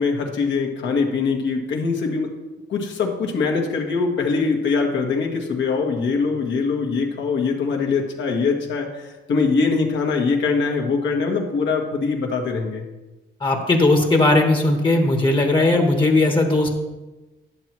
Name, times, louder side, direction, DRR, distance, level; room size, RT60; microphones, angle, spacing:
voice 1, 0.0-2.3 2.7-12.8, left 4 dB, 65° left, 2 dB, 1.6 m, -22 dB
voice 2, 13.4-16.7, left 2 dB, 25° left, 3 dB, 1.3 m, -18 dB
11.0 x 7.2 x 3.1 m, 1.1 s
cardioid pair, 90°, 20 cm